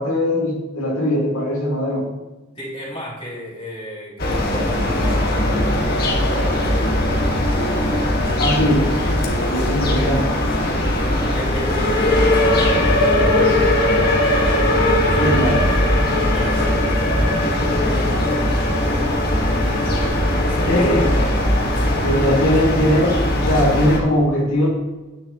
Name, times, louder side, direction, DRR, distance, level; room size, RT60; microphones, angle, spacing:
voice 1, 0.0-2.1 8.4-8.8 9.2-10.4 15.2-15.8 20.7-21.0 22.0-24.7, equal, 80° left, -4 dB, 2.4 m, -20 dB
voice 2, 2.6-6.9 11.1-13.9 14.9-15.6 16.1-19.2 19.5-19.9 20.4-21.3, equal, 25° left, -7 dB, 3.7 m, -34 dB
sound 1, 4.2-24.0, left 1 dB, 45° left, 1.9 m, -19 dB
10.5 x 10.0 x 3.1 m, 1.2 s
head